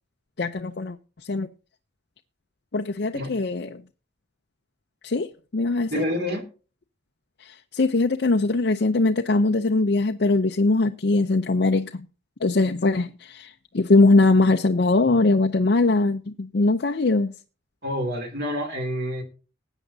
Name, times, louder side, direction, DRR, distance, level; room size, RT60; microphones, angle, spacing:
voice 1, 0.4-1.0 1.3-1.5 2.7-3.8 5.0-6.0 7.4-12.0 12.4-17.3, left 3 dB, 55° left, 0.5 m, -21 dB
voice 2, 5.9-6.4 17.8-19.2, equal, 50° right, 2.8 m, -28 dB
19.5 x 9.0 x 2.7 m
head